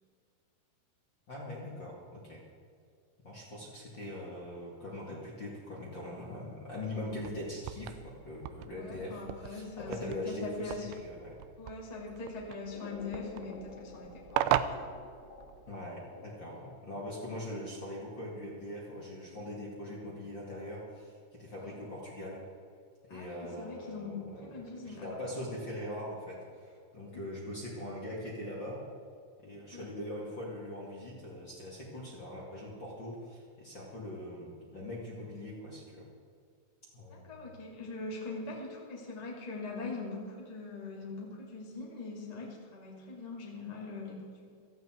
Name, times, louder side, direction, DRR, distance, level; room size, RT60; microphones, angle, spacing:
voice 1, 1.3-2.4 3.2-11.3 15.7-22.5 23.1-24.5 24.8-28.8 29.4-36.0 36.9-37.5, left 1 dB, 35° left, -5 dB, 1.9 m, -42 dB
sound 1, 7.1-15.8, right 11 dB, 85° right, 2.5 m, -38 dB
voice 2, 8.7-10.9 11.6-14.8 21.6-21.7 23.1-25.1 27.1-27.2 29.7-29.8 37.1-44.5, left 3 dB, 15° left, -3 dB, 1.3 m, -42 dB
sound 2, 12.7-16.7, left 4 dB, 75° left, 3.6 m, -50 dB
16.5 x 15.0 x 4.6 m, 2.3 s
omnidirectional pair, 5.6 m